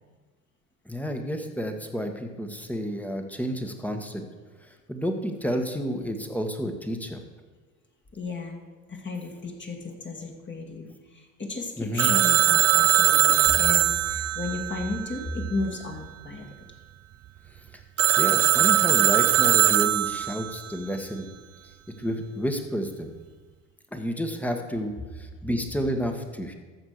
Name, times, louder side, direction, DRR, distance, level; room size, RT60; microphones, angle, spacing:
voice 1, 0.8-4.3 4.6-7.2 11.8-12.1 17.7-17.8 18.2-21.3 22.0-23.1 23.9-26.5, equal, 5° left, 5 dB, 1.6 m, -30 dB
voice 2, 8.1-8.6 8.9-16.4, left 2 dB, 25° left, 0 dB, 2.2 m, -34 dB
Telephone, 12.0-15.6 18.0-20.5, right 12 dB, 35° right, 0.6 m, -21 dB
14.0 x 5.4 x 6.6 m, 1.4 s
hypercardioid pair, 75°, 41 cm